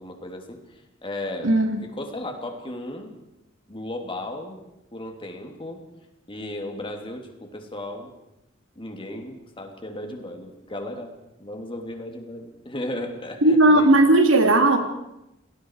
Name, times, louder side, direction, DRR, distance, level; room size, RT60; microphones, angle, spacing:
voice 1, 0.0-1.5 1.8-3.1 3.7-4.6 4.9-5.8 6.3-8.1 8.7-11.1 11.4-13.9, left 1 dB, 25° left, 3 dB, 3.2 m, -35 dB
voice 2, 1.4-1.8 13.4-14.8, right 2 dB, 75° right, 5 dB, 2.8 m, -16 dB
29.5 x 19.5 x 4.9 m, 0.87 s
head